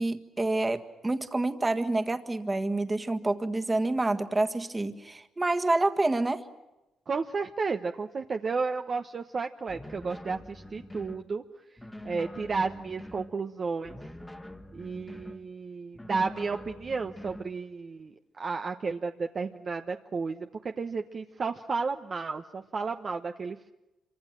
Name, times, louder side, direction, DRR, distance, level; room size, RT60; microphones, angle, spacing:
voice 1, 0.0-6.4, right 2 dB, 20° right, 8 dB, 1.7 m, -28 dB
voice 2, 7.1-11.4 12.0-14.0 14.7-20.5 20.8-23.7, right 4 dB, 40° right, 5 dB, 1.0 m, -32 dB
sound 1, 9.7-11.3 11.8-13.3 13.8-15.4 15.9-17.5, left 1 dB, 10° left, 1.6 m, -45 dB
26.5 x 24.5 x 7.5 m, 0.98 s
cardioid pair, 90°, 0 cm